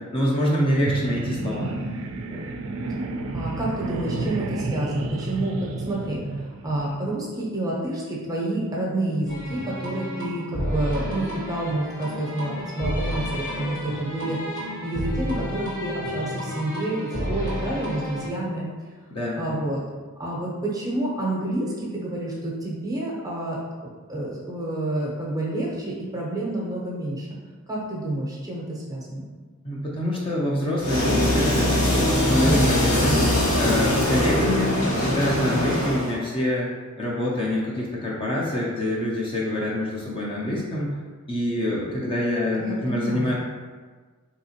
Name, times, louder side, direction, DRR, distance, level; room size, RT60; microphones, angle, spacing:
voice 1, 0.0-1.8 2.3-2.4 19.1-19.6 29.6-33.3 33.6-36.7 37.0-41.0 41.3-43.3, left 1 dB, 25° left, -4 dB, 0.5 m, -25 dB
sound 1, 0.7-7.0, right 3 dB, 70° right, 0.3 m, -31 dB
voice 2, 3.3-5.6 5.8-14.4 14.8-18.7 19.4-19.8 20.2-23.6 24.1-27.3 27.7-29.2 42.6-43.3, right 1 dB, 15° right, -4 dB, 0.6 m, -29 dB
sound 2, 9.3-18.3, equal, 65° left, 1.3 m, -31 dB
sound 3, 30.8-36.1, left 1 dB, 80° left, 1.1 m, -22 dB
3.5 x 2.8 x 2.8 m, 1.4 s
head